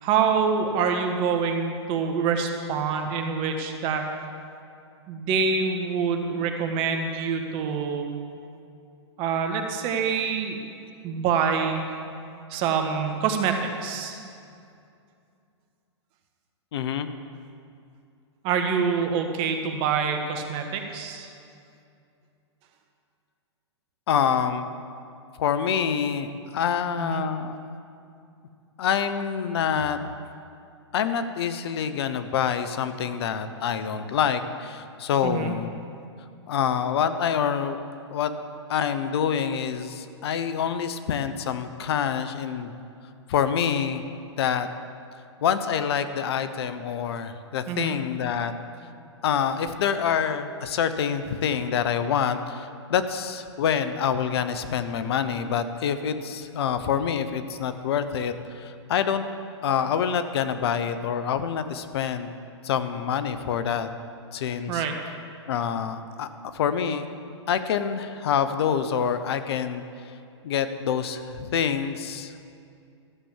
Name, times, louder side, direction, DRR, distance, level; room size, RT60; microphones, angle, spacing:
voice 1, 0.0-4.1 5.1-8.1 9.2-10.6 11.0-11.8 12.5-14.2 18.4-21.3 27.0-27.2 35.2-35.5 47.7-48.0 64.7-65.0, right 6 dB, 35° right, 4 dB, 1.5 m, -26 dB
voice 2, 16.7-17.1 24.1-24.7 25.4-27.6 28.8-30.0 30.9-35.8 36.5-37.8 38.1-38.3 38.7-42.7 43.3-44.0 44.4-44.7 45.4-48.5 49.2-59.2 59.6-62.3 62.6-63.9 64.3-64.8 65.5-67.1 67.5-69.8 70.4-72.3, left 8 dB, 60° left, 10 dB, 0.9 m, -26 dB
13.5 x 7.0 x 7.5 m, 2.5 s
hypercardioid pair, 120°, 15 cm